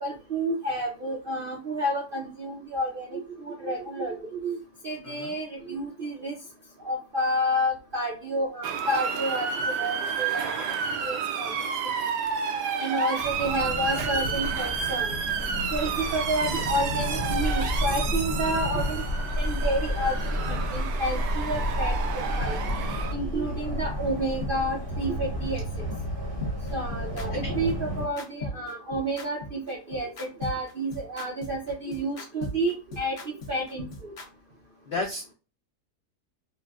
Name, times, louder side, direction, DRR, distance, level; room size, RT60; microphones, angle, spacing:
voice 1, 0.0-4.6 4.8-6.3 6.8-10.5 11.0-11.5 12.8-15.2 15.7-19.0 19.4-22.0 22.4-22.6 23.1-25.9 26.7-34.1, right 1 dB, 70° right, -1 dB, 0.5 m, -30 dB
voice 2, 5.0-5.3 27.4-27.5 34.9-35.3, left 3 dB, 85° left, 2 dB, 0.6 m, -33 dB
Motor vehicle (road) / Siren, 8.6-23.1, right 6 dB, 90° right, 1.2 m, -31 dB
sound 1, 13.2-28.1, left 1 dB, 25° right, 0.6 m, -31 dB
sound 2, 22.4-22.5 22.9-23.0 23.4-23.5 23.9-24.0 24.4-24.5 24.9-25.0 25.4-25.5 25.9-26.0 26.4-34.3, left 1 dB, 50° left, 0.9 m, -37 dB
4.1 x 2.0 x 2.3 m, 0.34 s
omnidirectional pair, 1.8 m